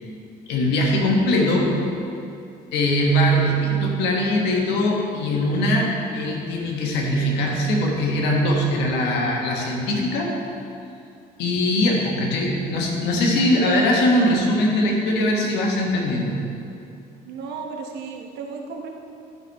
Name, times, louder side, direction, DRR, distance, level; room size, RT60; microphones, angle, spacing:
voice 1, 0.5-1.7 2.7-10.3 11.4-16.4, left 1 dB, 90° left, -1 dB, 1.5 m, -21 dB
voice 2, 17.3-18.9, right 5 dB, 80° right, 2 dB, 1.1 m, -34 dB
11.5 x 5.1 x 4.2 m, 2.5 s
cardioid pair, 110°, 17 cm